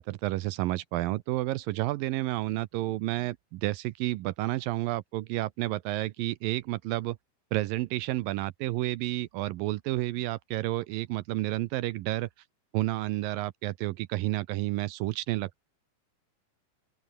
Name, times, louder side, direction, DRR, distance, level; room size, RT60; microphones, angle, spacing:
voice 1, 0.0-7.2 7.5-12.3 12.7-15.6, right 17 dB, 75° right, 2.3 m, -30 dB
open air
omnidirectional pair, 4.3 m